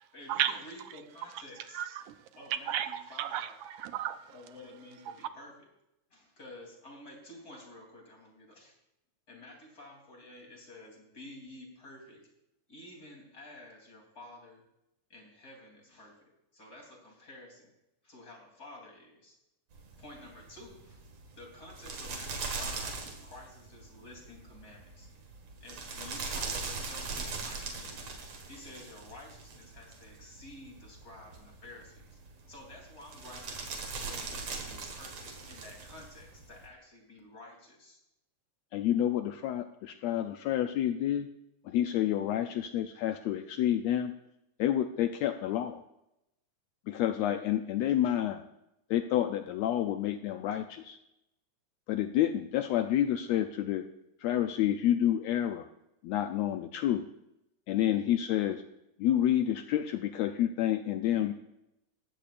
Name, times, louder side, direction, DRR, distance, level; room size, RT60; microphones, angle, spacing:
voice 1, 0.1-1.8 2.3-3.5 4.3-5.7 6.1-8.8 9.3-12.3 12.7-14.6 15.1-17.7 18.0-19.4 20.0-21.0 21.3-25.1 25.6-28.1 28.5-32.2 32.5-33.7 34.0-38.0, left 2 dB, 30° left, 3.8 m, -51 dB
voice 2, 1.7-2.2 2.5-4.3 5.1-5.2, right 11 dB, 90° right, 2.3 m, -33 dB
sound 1, 19.7-36.7, right 4 dB, 60° right, 2.7 m, -41 dB
voice 3, 38.7-41.3 41.7-44.1 44.6-45.8 46.9-48.4 48.9-51.0 51.9-53.9 54.2-55.7 56.0-57.1 57.7-58.6 59.0-61.3, left 11 dB, 75° left, 1.7 m, -29 dB
19.0 x 15.0 x 2.6 m
omnidirectional pair, 3.4 m